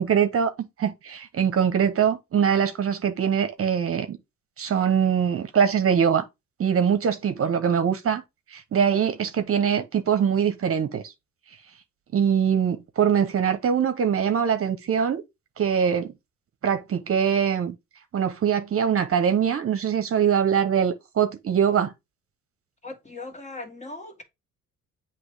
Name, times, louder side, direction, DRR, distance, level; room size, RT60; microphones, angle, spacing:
voice 1, 0.0-4.2 4.6-6.2 6.6-8.2 8.5-11.1 12.1-15.2 15.6-16.1 16.6-17.7 18.1-21.9, right 8 dB, 50° right, 0.9 m, -23 dB
voice 2, 22.8-24.2, left 2 dB, 25° left, 2.1 m, -39 dB
8.0 x 3.0 x 4.8 m
cardioid pair, 90°, 30 cm